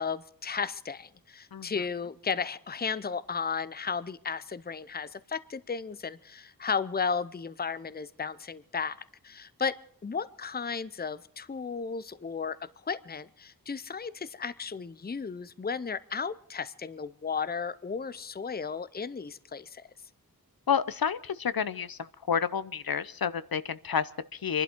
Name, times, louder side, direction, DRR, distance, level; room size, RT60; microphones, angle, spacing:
voice 1, 0.0-9.0 9.2-12.6 12.8-19.9, left 5 dB, 25° left, 16 dB, 0.6 m, -34 dB
voice 2, 20.7-22.0 22.3-24.6, left 7 dB, 70° left, 15 dB, 0.7 m, -29 dB
26.0 x 11.5 x 4.5 m, 0.63 s
wide cardioid pair, 80°, 37 cm